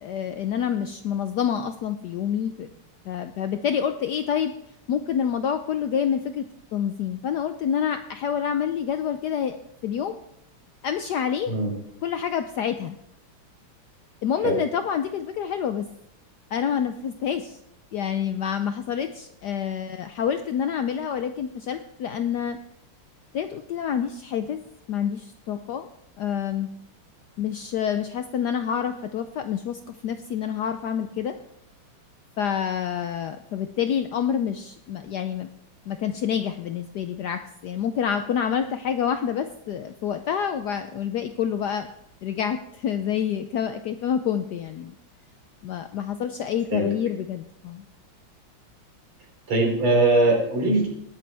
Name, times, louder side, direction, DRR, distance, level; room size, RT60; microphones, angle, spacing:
voice 1, 0.0-2.7 3.1-4.5 4.9-9.6 9.8-10.2 10.8-11.6 12.0-13.0 14.2-15.8 16.5-17.6 17.9-22.6 23.3-24.6 24.9-25.9 26.2-26.7 27.4-31.3 32.4-35.5 35.9-41.9 42.2-44.9 45.6-47.8, left 8 dB, 75° left, 8 dB, 1.0 m, -27 dB
voice 2, 49.5-50.9, right 2 dB, 75° right, 0 dB, 4.1 m, -21 dB
19.0 x 9.4 x 3.4 m, 0.75 s
omnidirectional pair, 2.3 m